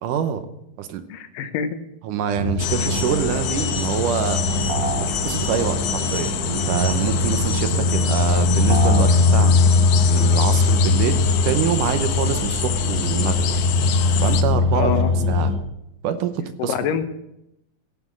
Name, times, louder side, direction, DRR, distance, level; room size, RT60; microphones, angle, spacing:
voice 1, 0.0-0.5 0.8-1.0 2.0-4.4 5.2-9.6 10.1-13.4 14.2-14.9 15.3-15.5 16.0-16.7, right 8 dB, 75° right, 9 dB, 2.4 m, -25 dB
voice 2, 1.1-1.8 14.7-15.1 16.6-17.1, left 7 dB, 90° left, 9 dB, 2.7 m, -25 dB
sound 1, 2.3-15.5, left 3 dB, 30° left, 2.8 m, -21 dB
sound 2, 2.6-14.4, left 9 dB, 70° left, 1.7 m, -28 dB
sound 3, 4.7-5.2 8.7-9.2, right 1 dB, 40° right, 1.5 m, -26 dB
15.5 x 6.0 x 7.4 m, 0.83 s
omnidirectional pair, 3.9 m